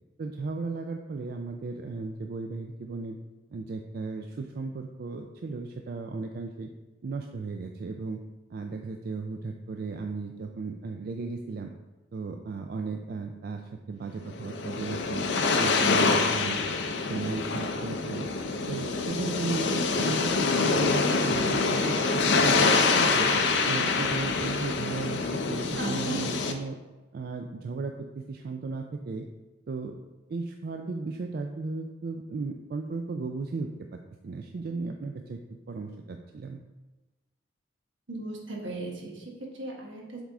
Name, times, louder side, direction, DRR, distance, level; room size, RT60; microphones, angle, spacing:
voice 1, 0.2-3.2 3.5-6.7 7.0-8.2 8.5-11.7 12.1-13.6 13.9-15.2 15.6-16.6 17.0-18.3 18.7-22.7 23.0-26.8 27.1-29.2 29.7-29.9 30.3-33.7 34.2-35.4 35.7-36.6, right 4 dB, 50° right, 4 dB, 0.3 m, -35 dB
sound 1, 14.3-26.5, left 4 dB, 65° left, 0.6 m, -26 dB
voice 2, 25.7-26.2 38.1-40.2, right 2 dB, 75° right, -1 dB, 1.3 m, -37 dB
7.2 x 3.6 x 3.6 m, 1.1 s
head